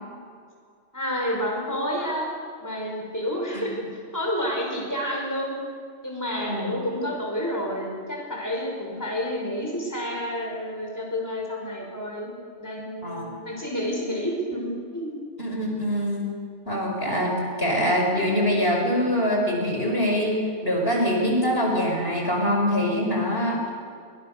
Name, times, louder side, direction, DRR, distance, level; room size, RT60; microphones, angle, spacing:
voice 1, 0.9-2.3 2.6-5.6 6.0-12.3 12.6-15.2, equal, 15° left, -1 dB, 5.3 m, -29 dB
voice 2, 6.5-6.8 13.0-13.3 15.4-16.3 16.7-23.7, equal, 50° left, 0 dB, 5.9 m, -24 dB
29.0 x 24.5 x 6.8 m, 2.1 s
omnidirectional pair, 1.2 m